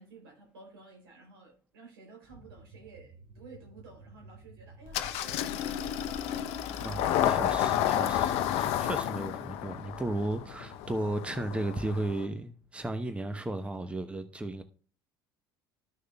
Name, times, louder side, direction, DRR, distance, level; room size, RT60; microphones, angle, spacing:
voice 1, 0.0-6.2 6.6-6.9, right 4 dB, 75° right, 3.5 m, -53 dB
sound 1, 2.3-12.1, right 3 dB, 35° right, 2.7 m, -54 dB
Engine starting, 4.9-12.3, left 11 dB, 55° left, 0.7 m, -31 dB
voice 2, 6.8-14.6, right 1 dB, 10° right, 0.9 m, -35 dB
13.5 x 6.4 x 2.3 m
figure-of-eight pair, 65°, 12 cm